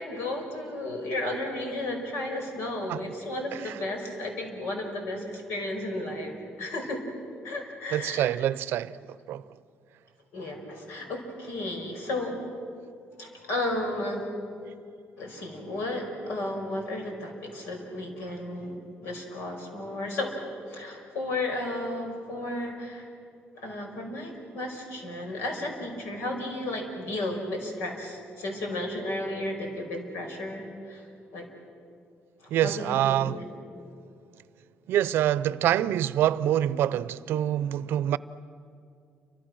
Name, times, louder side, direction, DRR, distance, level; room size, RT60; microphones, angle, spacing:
voice 1, 0.0-7.0 7.4-8.3 10.3-12.4 13.2-14.3 15.2-20.3 20.7-23.1 23.6-31.1 31.3-31.5 32.4-33.4, left 1 dB, 90° left, 5.3 m, -33 dB
voice 2, 7.9-9.0 9.3-9.4 32.5-33.4 34.9-38.2, right 11 dB, 75° right, 0.6 m, -25 dB
29.0 x 25.0 x 6.4 m
cardioid pair, 145°, 4 cm